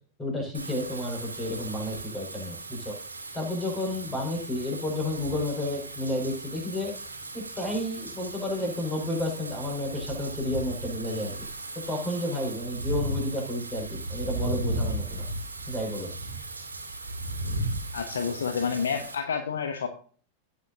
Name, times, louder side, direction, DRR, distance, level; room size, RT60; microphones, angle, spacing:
voice 1, 0.2-2.9 3.3-6.9 7.3-11.3 11.7-15.2 15.7-16.1, left 1 dB, 15° left, 1 dB, 5.1 m, -31 dB
Wind / Rain, 0.5-19.2, right 1 dB, 80° right, 2.0 m, -36 dB
voice 2, 17.9-19.9, left 6 dB, 65° left, 6 dB, 1.0 m, -29 dB
17.0 x 6.9 x 2.6 m, 0.43 s
figure-of-eight pair, 90°, 0 cm